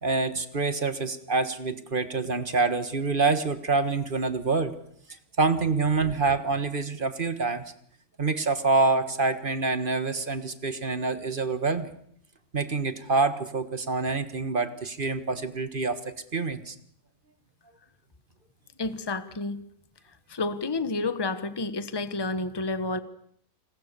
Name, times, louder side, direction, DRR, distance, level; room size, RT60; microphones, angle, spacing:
voice 1, 0.0-4.8 5.4-7.6 8.2-11.9 12.5-16.7, right 3 dB, 35° right, 11 dB, 1.5 m, -26 dB
voice 2, 18.8-19.6 20.3-23.0, left 3 dB, 20° left, 12 dB, 1.1 m, -30 dB
28.5 x 20.5 x 6.8 m, 0.66 s
omnidirectional pair, 1.5 m